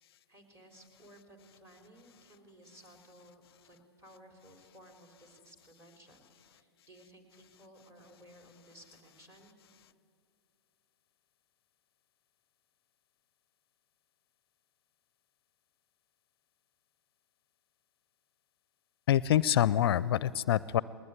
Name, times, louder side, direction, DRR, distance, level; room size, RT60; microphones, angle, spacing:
voice 1, 0.3-9.5, right 1 dB, 20° right, 4 dB, 4.0 m, -57 dB
voice 2, 19.1-20.8, left 11 dB, 60° left, 20 dB, 0.5 m, -26 dB
19.5 x 19.5 x 9.7 m, 2.5 s
hypercardioid pair, 115°, 14 cm